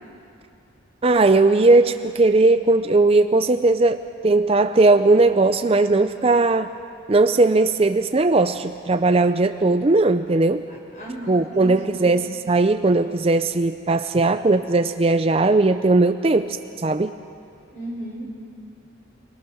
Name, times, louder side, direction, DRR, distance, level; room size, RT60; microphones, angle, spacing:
voice 1, 1.0-6.7 7.1-10.7 11.3-17.1, right 2 dB, 30° right, 9 dB, 0.5 m, -18 dB
voice 2, 10.7-12.0 17.7-18.2, right 1 dB, 35° left, -3 dB, 6.3 m, -35 dB
29.0 x 22.0 x 6.3 m, 2.6 s
head